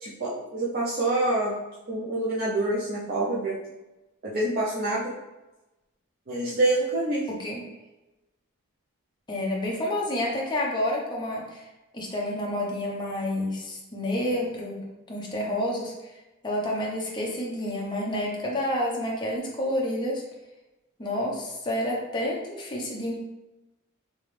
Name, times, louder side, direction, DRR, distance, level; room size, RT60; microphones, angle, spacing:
voice 1, 0.0-1.5 1.9-3.6 4.2-5.1 6.3-7.2, right 2 dB, 45° right, -7 dB, 0.6 m, -26 dB
voice 2, 7.3-7.7 9.3-11.6 11.9-15.9 16.4-20.2 21.0-23.2, left 1 dB, 20° left, -3 dB, 0.9 m, -29 dB
3.4 x 3.1 x 3.3 m, 1.0 s
head